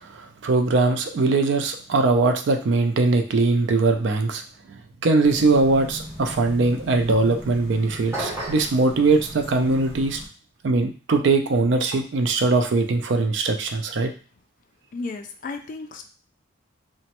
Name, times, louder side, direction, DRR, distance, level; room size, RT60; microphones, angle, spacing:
voice 1, 0.1-4.4 5.0-10.2 10.6-14.1, right 3 dB, 60° right, 6 dB, 0.4 m, -21 dB
sound 1, 5.2-10.3, equal, 15° left, 1.1 m, -39 dB
sound 2, 8.1-8.8, right 1 dB, 15° right, 0.7 m, -30 dB
voice 2, 14.9-16.1, left 3 dB, 45° left, 6 dB, 0.3 m, -34 dB
3.0 x 2.1 x 2.9 m, 0.37 s
head